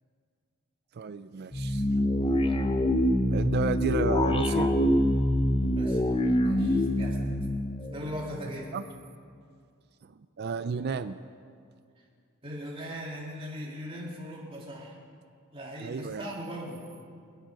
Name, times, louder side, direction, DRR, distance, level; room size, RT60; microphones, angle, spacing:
voice 1, 0.9-1.8 3.3-4.7 8.7-8.8 10.0-11.2 15.8-16.2, right 5 dB, 50° right, 12 dB, 0.4 m, -32 dB
sound 1, 1.5-8.7, left 1 dB, 25° left, 0.8 m, -25 dB
voice 2, 5.7-6.1 6.4-7.2 7.9-8.7 12.4-15.0 15.5-16.8, equal, 25° right, -4 dB, 3.2 m, -39 dB
26.5 x 9.0 x 5.2 m, 2.3 s
head